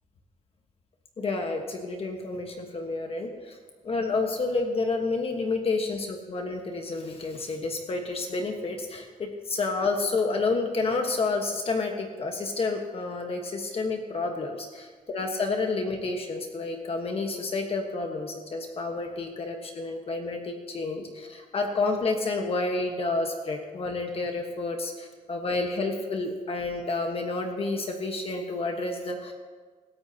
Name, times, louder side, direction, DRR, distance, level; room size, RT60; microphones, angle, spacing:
voice 1, 1.2-3.6 3.8-29.3, left 3 dB, 40° left, 2 dB, 1.4 m, -30 dB
25.5 x 13.5 x 2.9 m, 1.5 s
wide cardioid pair, 140°, 15 cm